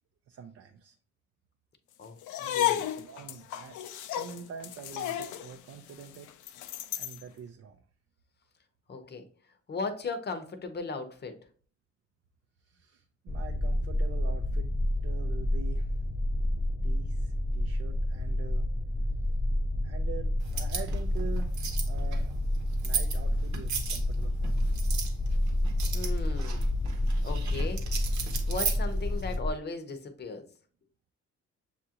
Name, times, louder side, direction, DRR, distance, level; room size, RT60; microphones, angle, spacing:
voice 1, 0.3-0.9 2.4-3.8 4.0-6.3 6.6-7.8 12.6-14.7 15.0-16.0 16.8-18.7 19.8-21.5 21.8-22.3 22.8-24.8 27.4-27.9, right 7 dB, 50° right, 5 dB, 0.5 m, -45 dB
sound 1, 2.2-7.2, left 12 dB, 80° left, 0.5 m, -33 dB
voice 2, 2.4-2.8 8.9-9.2 9.7-11.4 25.9-26.7 27.2-27.8 28.5-30.5, left 3 dB, 35° left, 8 dB, 0.7 m, -37 dB
sound 2, 13.3-29.5, left 1 dB, 15° left, 0.4 m, -29 dB
sound 3, 20.4-29.4, right 5 dB, 70° right, 0.9 m, -37 dB
6.6 x 2.5 x 2.8 m, 0.43 s
cardioid pair, 90°, 30 cm